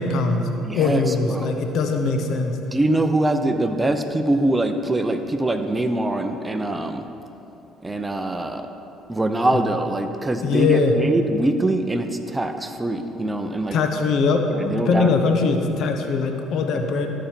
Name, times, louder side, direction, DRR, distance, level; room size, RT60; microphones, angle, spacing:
voice 1, 0.0-0.5 0.7-2.6 10.4-10.9 13.7-17.1, left 4 dB, 65° left, 5 dB, 0.9 m, -21 dB
voice 2, 0.6-1.5 2.7-7.1 7.8-8.7 9.1-13.8 14.5-15.3, right 1 dB, 15° right, 7 dB, 0.7 m, -23 dB
12.5 x 5.2 x 4.5 m, 3.0 s
supercardioid pair, 80°, 0 cm